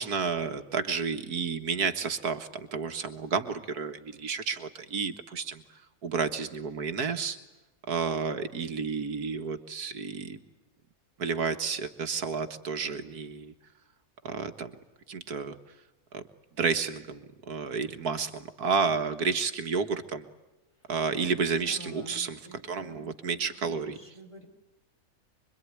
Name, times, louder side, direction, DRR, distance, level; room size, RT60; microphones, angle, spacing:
voice 1, 0.0-5.6 6.0-7.4 7.9-10.4 11.2-13.5 14.2-14.8 15.1-15.6 16.1-16.2 16.6-20.3 20.9-24.0, right 5 dB, 80° right, 8 dB, 2.0 m, -31 dB
voice 2, 21.5-24.5, equal, 20° left, 3 dB, 4.1 m, -48 dB
25.5 x 23.5 x 9.6 m, 0.99 s
omnidirectional pair, 1.6 m